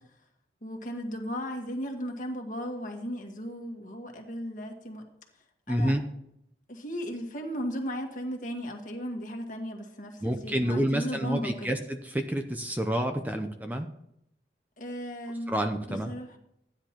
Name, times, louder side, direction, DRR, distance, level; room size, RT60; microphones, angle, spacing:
voice 1, 0.6-5.0 5.7-5.9 6.7-11.8 14.8-15.5 15.9-16.4, equal, 45° left, 2 dB, 1.7 m, -36 dB
voice 2, 5.7-6.0 10.2-13.9 15.5-16.1, equal, 10° right, 5 dB, 0.6 m, -29 dB
15.0 x 9.9 x 3.0 m, 0.77 s
head